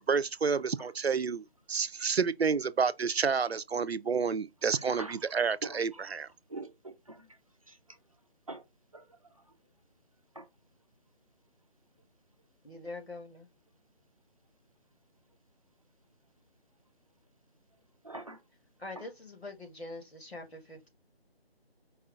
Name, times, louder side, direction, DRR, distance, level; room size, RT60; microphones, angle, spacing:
voice 1, 0.1-6.3, right 5 dB, 75° right, 0.6 m, -29 dB
voice 2, 5.6-6.1 6.5-7.3 7.7-7.8 8.5-8.6 8.9-9.0 10.4-10.5 18.0-18.4 19.0-19.1, right 2 dB, 35° right, 0.6 m, -43 dB
voice 3, 12.6-13.5 18.8-20.9, left 2 dB, 80° left, 2.1 m, -44 dB
4.7 x 2.7 x 3.5 m
figure-of-eight pair, 160°, 31 cm